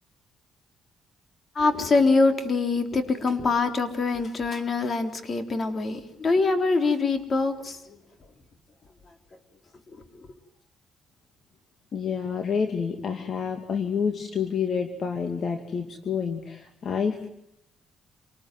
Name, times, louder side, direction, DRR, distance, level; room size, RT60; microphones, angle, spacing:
voice 1, 1.5-8.0 9.9-10.3, left 3 dB, 40° left, 6 dB, 3.8 m, -24 dB
voice 2, 11.9-17.3, left 6 dB, 55° left, 6 dB, 2.4 m, -28 dB
27.5 x 20.0 x 9.4 m, 0.79 s
cardioid pair, 90°, 0 cm